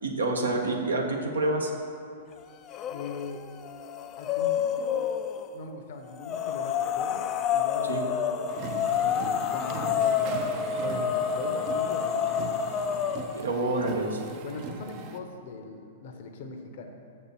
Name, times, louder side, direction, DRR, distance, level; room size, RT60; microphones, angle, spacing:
voice 1, 0.0-1.7 7.9-8.0 13.3-14.2, right 2 dB, 80° right, 2 dB, 0.9 m, -27 dB
sound 1, 2.7-3.3 3.6-5.5 6.2-13.4, left 8 dB, 30° left, 0.3 m, -28 dB
voice 2, 2.9-3.5 4.2-5.1 5.5-8.5 8.9-12.3 14.4-17.0, left 4 dB, 55° left, 4 dB, 0.7 m, -40 dB
sound 2, 8.5-15.2, right 5 dB, 40° right, 0.5 m, -40 dB
6.8 x 4.3 x 6.1 m, 2.4 s
figure-of-eight pair, 105°, 0 cm